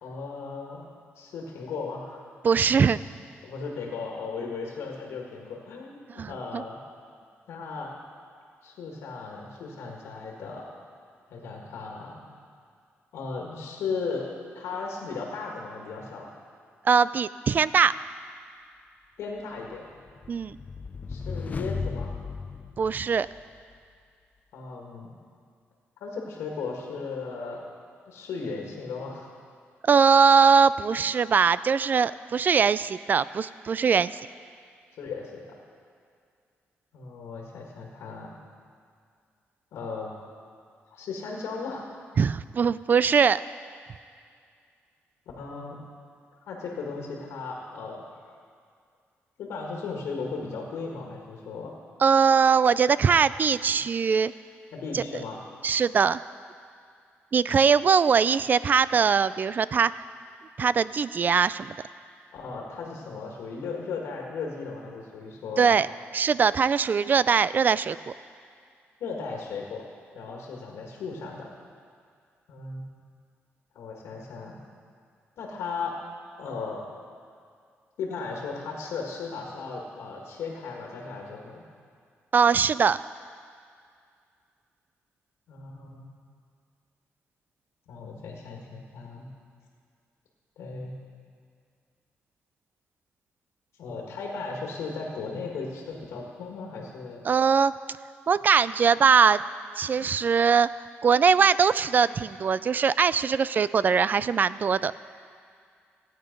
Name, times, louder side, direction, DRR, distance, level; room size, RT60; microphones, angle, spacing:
voice 1, 0.0-0.8 1.1-2.2 3.4-6.8 7.5-8.0 8.6-10.7 11.3-12.2 13.1-14.2 14.5-16.3 19.2-19.9 21.1-22.1 24.5-25.1 26.0-27.6 28.0-29.3 34.9-35.4 36.9-38.4 39.7-40.1 40.9-41.9 45.4-45.8 46.5-48.0 49.4-51.7 54.7-55.4 62.3-65.8 69.0-69.8 70.1-71.5 72.5-72.8 73.7-74.5 75.4-75.9 76.4-76.8 78.0-81.6 85.5-86.0 87.9-89.3 90.6-91.0 93.8-97.2, left 4 dB, 90° left, -1 dB, 1.8 m, -36 dB
voice 2, 2.4-3.0 6.2-6.6 16.9-17.9 20.3-20.6 22.8-23.3 29.8-34.2 42.2-43.4 52.0-54.3 54.9-55.0 55.6-56.2 57.3-59.9 60.6-61.8 65.6-65.9 66.1-68.0 82.3-83.0 97.2-97.7 98.3-99.4 99.8-100.7 101.0-104.9, right 6 dB, 40° right, 17 dB, 0.3 m, -21 dB
sound 1, 19.7-23.6, left 4 dB, 35° left, 0.5 m, -36 dB
16.0 x 9.0 x 5.2 m, 2.2 s
cardioid pair, 100°, 5 cm